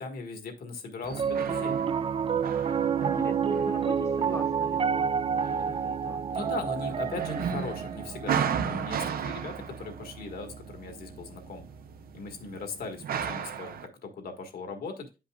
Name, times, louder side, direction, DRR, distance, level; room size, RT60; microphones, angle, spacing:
voice 1, 0.0-1.8 6.3-11.6 12.1-15.1, left 4 dB, 75° left, 5 dB, 1.6 m, -39 dB
sound 1, 1.0-13.9, right 7 dB, 70° right, 0.7 m, -36 dB
Piano, 1.1-11.5, right 7 dB, 35° right, 0.4 m, -30 dB
voice 2, 2.9-6.4 6.8-7.3, left 2 dB, 20° left, 5 dB, 0.9 m, -43 dB
9.3 x 5.5 x 2.4 m, 0.28 s
wide cardioid pair, 125°, 16 cm